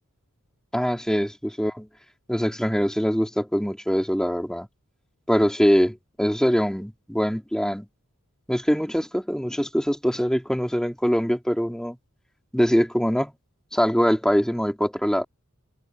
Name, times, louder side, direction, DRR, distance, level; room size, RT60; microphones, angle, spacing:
voice 1, 0.7-1.9 2.3-4.7 5.3-7.9 8.5-12.0 12.5-13.3 13.7-15.2, equal, 5° left, 4.3 m, -23 dB
head